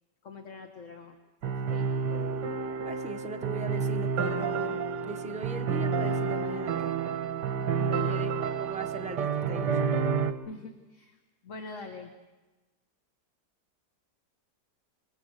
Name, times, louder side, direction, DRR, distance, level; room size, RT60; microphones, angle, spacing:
voice 1, 0.2-1.2 1.4-1.9 7.8-8.3 10.5-11.2 11.4-12.1, left 4 dB, 45° left, 4 dB, 1.9 m, -43 dB
sound 1, 1.4-10.3, right 5 dB, 75° right, 1.7 m, -29 dB
voice 2, 2.1-2.5 2.8-7.0 7.9-9.9, right 3 dB, 5° right, 4 dB, 0.6 m, -40 dB
26.5 x 23.5 x 6.6 m, 1.2 s
omnidirectional pair, 1.9 m